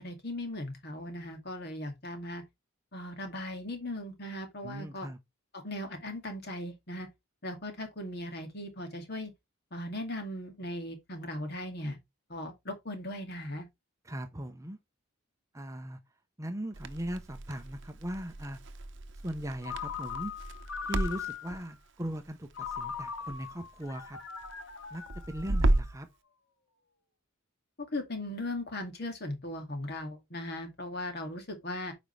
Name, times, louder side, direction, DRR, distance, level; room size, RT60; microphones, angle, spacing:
voice 1, 0.0-2.4 2.9-5.1 5.6-7.1 7.4-9.3 9.7-12.0 12.3-13.6 27.8-31.9, left 1 dB, 50° left, 2.3 m, -38 dB
voice 2, 4.6-5.2 14.0-14.8 15.5-16.0 16.4-18.6 19.2-20.3 20.8-24.2 24.9-26.1, equal, 15° right, 0.7 m, -39 dB
Crackle, 16.7-26.0, right 1 dB, 55° right, 0.8 m, -34 dB
Ringtone, 19.6-21.7 22.5-25.9, left 7 dB, 75° left, 1.3 m, -40 dB
9.0 x 5.2 x 3.2 m
head